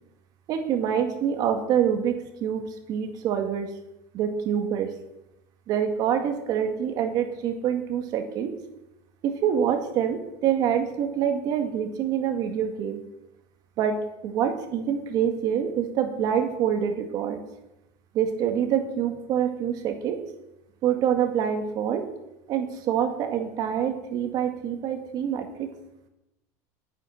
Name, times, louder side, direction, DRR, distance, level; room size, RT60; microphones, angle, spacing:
voice 1, 0.5-3.7 4.1-4.9 5.7-8.5 9.2-13.0 13.8-14.0 14.2-17.4 18.1-20.2 20.8-22.1 22.5-25.7, right 8 dB, 45° right, 5 dB, 1.8 m, -26 dB
12.5 x 9.0 x 6.4 m, 0.91 s
supercardioid pair, 135°, 9 cm